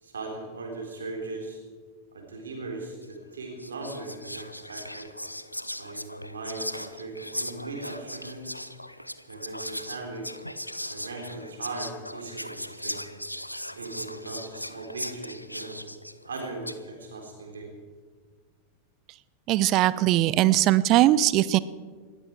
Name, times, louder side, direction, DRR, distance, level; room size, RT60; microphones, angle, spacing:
voice 1, 0.0-1.6 2.1-5.1 5.8-8.5 9.3-10.3 10.9-13.1 13.7-15.9 16.2-17.7, right 3 dB, 70° right, 1 dB, 3.9 m, -38 dB
Whispering, 3.0-3.2 3.6-16.9, left 1 dB, 90° left, 0.7 m, -38 dB
voice 2, 19.5-21.6, right 15 dB, 40° right, 19 dB, 0.5 m, -20 dB
19.5 x 14.5 x 4.6 m, 1.5 s
figure-of-eight pair, 90°, 0 cm